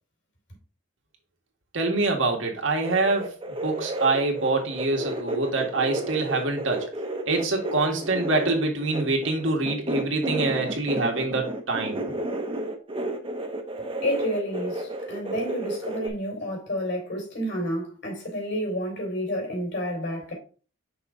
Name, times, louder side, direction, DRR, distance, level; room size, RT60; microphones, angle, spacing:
voice 1, 1.7-3.3 3.6-6.8 7.3-12.0, right 3 dB, 85° right, 1.7 m, -25 dB
sound 1, 2.8-16.1, right 1 dB, 30° right, 0.9 m, -32 dB
voice 2, 14.0-20.3, equal, 65° left, 3.6 m, -30 dB
5.9 x 4.0 x 4.9 m
head